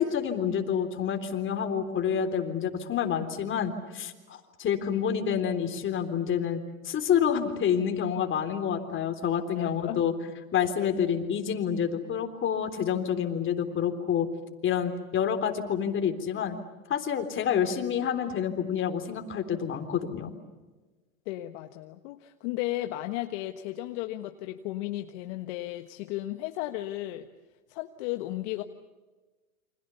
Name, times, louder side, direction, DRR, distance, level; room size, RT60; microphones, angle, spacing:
voice 1, 0.0-10.1 10.5-14.3 14.6-16.6 16.9-20.3, left 8 dB, 30° left, 6 dB, 3.6 m, -28 dB
voice 2, 9.5-10.0 10.8-10.9 21.2-27.3 27.7-28.6, left 16 dB, 55° left, 6 dB, 1.5 m, -34 dB
29.5 x 26.0 x 7.0 m, 1.2 s
hypercardioid pair, 115°, 42 cm